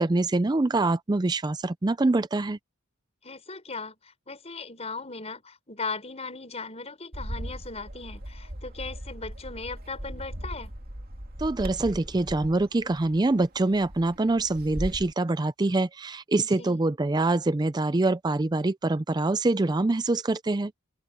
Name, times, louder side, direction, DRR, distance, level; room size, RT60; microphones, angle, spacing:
voice 1, 0.0-2.6 11.4-20.7, right 2 dB, 20° right, 0.4 m, -25 dB
voice 2, 3.2-10.7 16.4-16.8, left 4 dB, 30° left, 5.7 m, -38 dB
Bird, 7.1-15.1, equal, 40° right, 2.8 m, -38 dB
open air
head